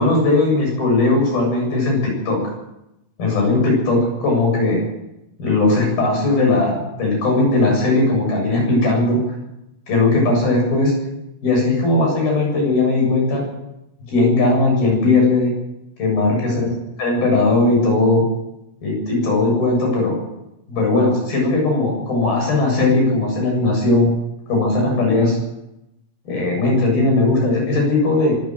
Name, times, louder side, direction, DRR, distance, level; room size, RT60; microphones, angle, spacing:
voice 1, 0.0-2.4 3.2-4.8 5.4-9.2 9.9-10.9 11.4-13.4 14.1-15.5 16.0-16.7 17.0-18.2 18.8-20.2 20.7-24.1 24.5-25.4 26.3-28.3, left 2 dB, 60° left, 0 dB, 9.4 m, -18 dB
24.0 x 14.0 x 7.8 m, 0.88 s
omnidirectional pair, 4.7 m